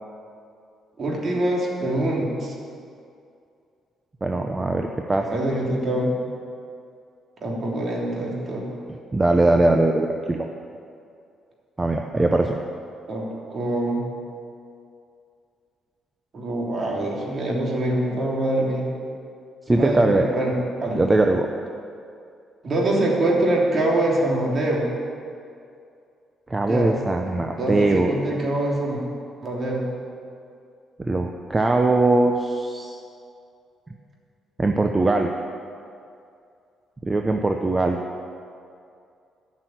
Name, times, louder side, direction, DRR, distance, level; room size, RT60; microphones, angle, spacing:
voice 1, 1.0-2.5 5.3-6.1 7.4-8.8 13.1-14.0 16.3-18.9 19.7-21.0 22.6-24.9 26.7-26.9 27.3-29.0 29.4-29.9, right 1 dB, 45° right, -3 dB, 3.1 m, -24 dB
voice 2, 4.2-5.3 9.1-10.5 11.8-12.6 19.7-20.3 20.9-21.5 26.5-28.1 31.0-33.0 34.6-35.3 37.0-38.0, right 2 dB, 20° right, 3 dB, 0.7 m, -21 dB
12.0 x 6.3 x 9.2 m, 2.4 s
cardioid pair, 90°, 0 cm